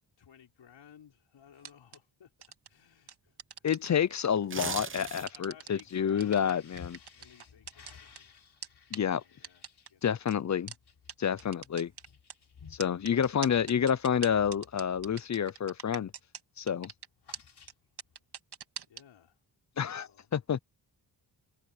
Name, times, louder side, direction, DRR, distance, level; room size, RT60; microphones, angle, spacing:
voice 1, 0.2-2.3 2.7-3.4 5.3-6.8 7.1-8.6 9.1-10.1 10.5-10.7 11.3-11.6 18.9-19.4 20.0-20.3, left 8 dB, 75° left, 5.7 m, -57 dB
sound 1, 1.6-2.0 2.4-2.7 3.1-4.3 4.6-5.8 6.2-8.2 8.6-8.7 8.9-9.0 9.4-9.9 10.3-10.4 10.7-10.8 11.1-11.2 11.4-12.3 12.8-16.4 16.7-17.1 17.3-17.4 17.7-17.8 18.0-19.0, right 7 dB, 60° right, 2.4 m, -42 dB
voice 2, 3.6-7.0 8.9-9.2 10.0-10.7 11.2-11.9 12.7-16.1 16.6-16.9 19.8-20.6, left 8 dB, 40° left, 0.6 m, -29 dB
sound 2, 4.4-5.5 5.9-6.1, right 6 dB, 30° right, 0.7 m, -37 dB
sound 3, 5.8-15.7 16.0-16.3 16.6-18.2, left 6 dB, 60° left, 5.6 m, -56 dB
wide cardioid pair, 125°, 45 cm